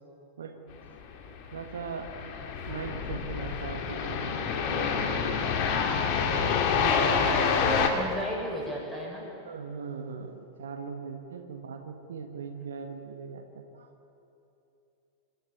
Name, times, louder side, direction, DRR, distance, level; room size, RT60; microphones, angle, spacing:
sound 1, 1.2-7.9, left 6 dB, 45° left, 2.3 m, -27 dB
voice 1, 1.5-2.2 2.6-5.3 9.4-13.9, right 5 dB, 65° right, 5 dB, 1.5 m, -40 dB
voice 2, 6.7-9.3, equal, 10° left, -2 dB, 7.3 m, -34 dB
27.5 x 12.5 x 9.7 m, 2.9 s
figure-of-eight pair, 90°, 0 cm